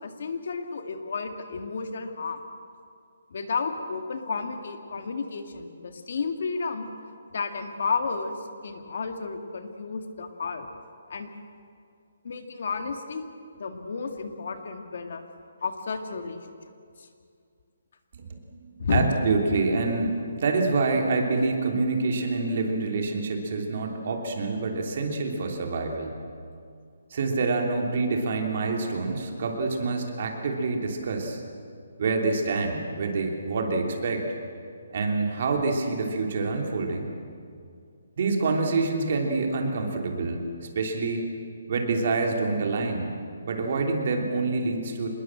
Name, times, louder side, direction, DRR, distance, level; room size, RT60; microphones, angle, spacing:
voice 1, 0.0-2.4 3.3-6.9 7.3-8.4 8.6-10.7 11.1-11.3 12.2-13.3 13.6-15.3 15.6-16.4 17.0-17.1 18.8-19.0, left 5 dB, 50° left, 6 dB, 2.0 m, -31 dB
voice 2, 18.2-26.1 27.1-31.4 32.0-34.2 34.9-37.1 38.2-40.4 40.7-41.3 41.7-43.1 43.5-45.1, right 3 dB, 40° right, 2 dB, 3.1 m, -27 dB
26.5 x 20.5 x 7.7 m, 2.3 s
hypercardioid pair, 175°, 0 cm